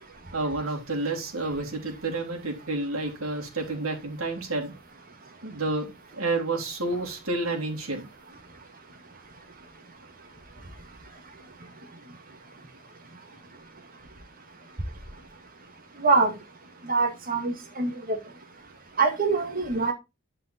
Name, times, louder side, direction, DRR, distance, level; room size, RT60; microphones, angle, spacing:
voice 1, 0.3-4.7 5.4-8.0, right 2 dB, 75° right, 3.4 m, -30 dB
voice 2, 16.0-16.3 16.9-18.2 19.0-19.9, right 3 dB, 45° right, 2.3 m, -24 dB
11.0 x 5.6 x 4.3 m
head